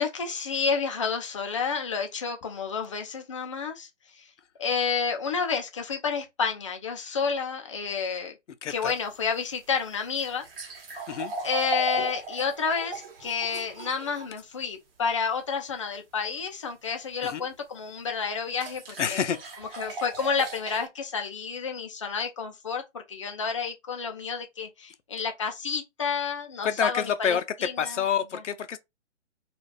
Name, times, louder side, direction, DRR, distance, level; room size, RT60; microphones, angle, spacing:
voice 1, 0.0-4.3 4.6-8.3 8.7-10.4 11.4-18.8 19.1-19.2 19.8-28.0, left 5 dB, 30° left, 0.4 m, -30 dB
voice 2, 8.6-8.9 11.1-11.3 17.2-17.4 19.0-19.4 26.6-28.8, left 8 dB, 75° left, 0.6 m, -28 dB
sound 1, 8.7-14.3 17.4-17.5 18.6-20.9, right 2 dB, 50° right, 0.9 m, -37 dB
2.5 x 2.4 x 3.1 m
hypercardioid pair, 145°, 36 cm